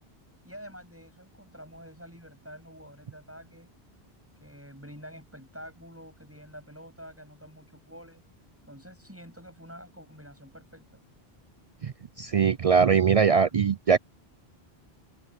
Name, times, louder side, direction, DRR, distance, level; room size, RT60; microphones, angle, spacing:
voice 1, 0.4-3.7 4.4-8.2 8.7-11.0, equal, 10° right, 7.9 m, -47 dB
voice 2, 11.8-14.0, right 6 dB, 55° right, 0.4 m, -22 dB
open air
omnidirectional pair, 1.1 m